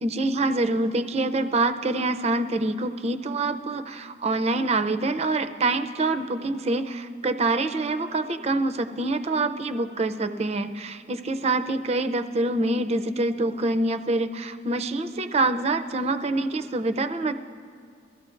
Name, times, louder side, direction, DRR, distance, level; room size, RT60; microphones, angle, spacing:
voice 1, 0.0-17.3, right 2 dB, 35° right, 9 dB, 0.5 m, -26 dB
22.0 x 14.5 x 2.5 m, 2.2 s
head